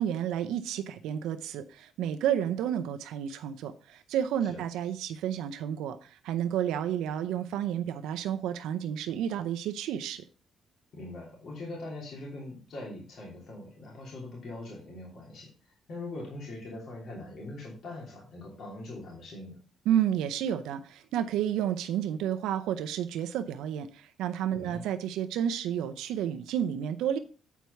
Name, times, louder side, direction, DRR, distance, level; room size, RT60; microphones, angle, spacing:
voice 1, 0.0-10.2 19.9-27.2, right 10 dB, 90° right, 0.6 m, -31 dB
voice 2, 10.9-15.5 15.9-19.6 24.5-24.8, left 2 dB, 60° left, 3.1 m, -42 dB
8.2 x 4.6 x 5.6 m
cardioid pair, 90°, 0 cm